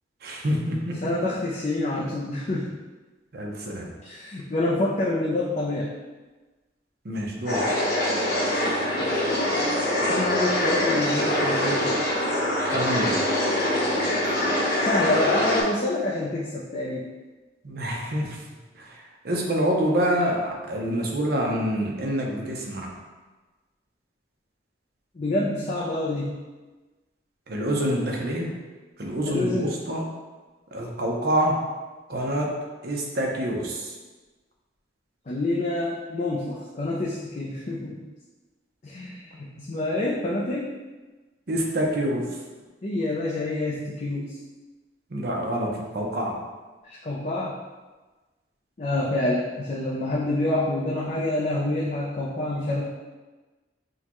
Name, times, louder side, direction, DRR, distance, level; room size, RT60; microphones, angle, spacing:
voice 1, 0.2-1.0 3.3-3.9 7.0-7.7 12.7-13.2 17.6-18.4 18.8-18.9 19.2-22.9 27.5-28.5 29.0-30.0 30.7-31.6 32.1-32.5 32.8-33.9 41.5-42.3 45.1-46.4, right 1 dB, 55° right, -1 dB, 0.7 m, -26 dB
voice 2, 1.0-2.7 4.0-5.9 10.1-11.9 14.8-17.0 25.2-26.3 29.3-29.7 35.3-38.0 38.8-40.7 42.8-44.4 46.8-47.6 48.8-52.8, left 2 dB, 40° left, -5 dB, 0.5 m, -27 dB
sound 1, 7.5-15.6, left 1 dB, 60° left, 1.0 m, -24 dB
6.3 x 2.3 x 3.0 m, 1.2 s
head